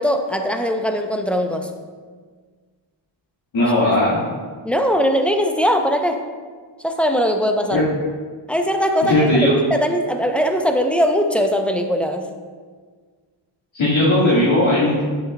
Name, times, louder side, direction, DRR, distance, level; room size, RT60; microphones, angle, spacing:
voice 1, 0.0-1.7 4.6-6.2 6.8-7.8 8.5-9.2 9.7-12.2, equal, ahead, 4 dB, 0.6 m, -20 dB
voice 2, 3.5-4.2 7.7-7.8 9.0-9.5 13.7-15.0, left 1 dB, 70° left, -10 dB, 1.9 m, -17 dB
7.3 x 7.1 x 2.2 m, 1.6 s
cardioid pair, 60°, 50 cm